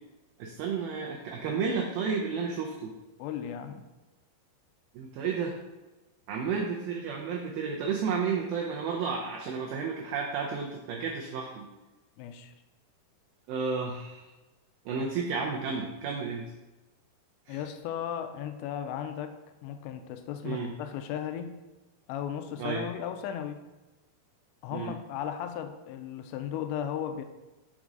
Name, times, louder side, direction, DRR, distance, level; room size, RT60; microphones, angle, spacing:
voice 1, 0.4-2.9 4.9-5.6 6.3-11.7 13.5-14.3 14.9-16.5 17.5-17.6 20.4-20.7 22.6-22.8 24.7-24.9, right 5 dB, 90° right, -1 dB, 2.1 m, -32 dB
voice 2, 3.2-3.9 12.2-12.5 17.5-21.6 22.1-23.6 24.6-27.2, left 9 dB, 85° left, 8 dB, 2.7 m, -36 dB
6.1 x 5.2 x 3.8 m, 1.1 s
omnidirectional pair, 5.0 m